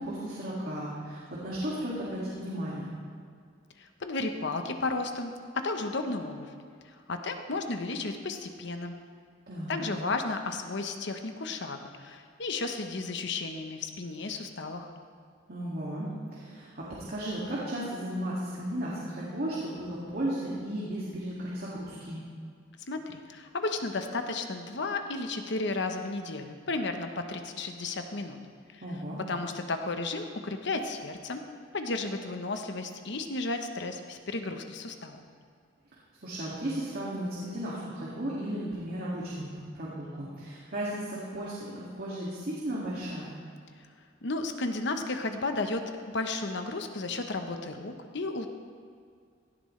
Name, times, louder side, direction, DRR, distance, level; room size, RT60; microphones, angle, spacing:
voice 1, 0.0-2.9 9.5-9.8 15.5-22.2 28.8-29.2 36.2-39.5 39.7-43.3, right 1 dB, 50° right, -7 dB, 2.2 m, -35 dB
voice 2, 3.8-6.5 6.8-8.9 9.7-14.9 22.9-28.4 28.7-28.8 29.3-31.4 31.7-35.2 44.2-45.8 46.1-48.5, left 3 dB, 65° left, 6 dB, 1.0 m, -33 dB
17.0 x 12.0 x 3.3 m, 2.2 s
head